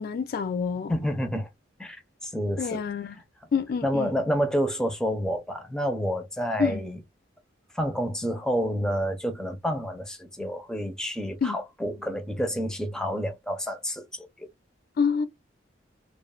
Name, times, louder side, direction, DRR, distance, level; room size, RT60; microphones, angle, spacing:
voice 1, 0.0-0.9 2.6-3.2 3.5-4.2 6.6-6.8 11.4-11.6 15.0-15.3, left 6 dB, 50° left, 0.3 m, -27 dB
voice 2, 0.9-1.5 1.8-2.8 3.8-7.0 7.7-14.5, equal, 5° left, 0.5 m, -29 dB
3.0 x 2.1 x 2.2 m
head